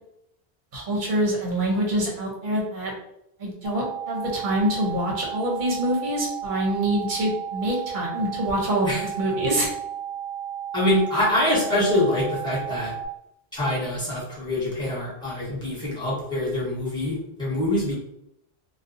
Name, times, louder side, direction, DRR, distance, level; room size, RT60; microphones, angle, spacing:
voice 1, 0.7-2.9 3.4-9.7, right 1 dB, 50° right, -2 dB, 0.9 m, -25 dB
sound 1, 3.6-13.1, right 9 dB, 30° left, 0.6 m, -33 dB
voice 2, 10.7-12.9 13.5-17.1 17.4-17.9, left 1 dB, 5° left, -7 dB, 1.0 m, -24 dB
2.6 x 2.3 x 2.5 m, 0.79 s
omnidirectional pair, 1.1 m